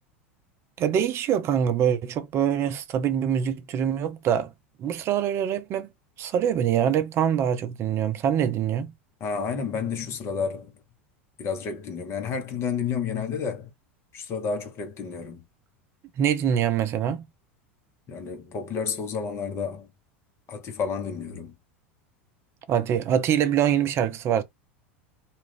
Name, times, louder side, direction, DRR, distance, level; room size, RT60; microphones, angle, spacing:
voice 1, 0.8-4.5 4.8-5.9 6.2-8.9 16.2-17.3 22.7-24.4, right 9 dB, 40° right, 0.5 m, -24 dB
voice 2, 9.2-10.7 11.4-13.7 14.1-15.4 18.1-19.9 20.5-21.6, left 6 dB, 40° left, 0.9 m, -30 dB
2.4 x 2.4 x 3.3 m
hypercardioid pair, 85°, 7 cm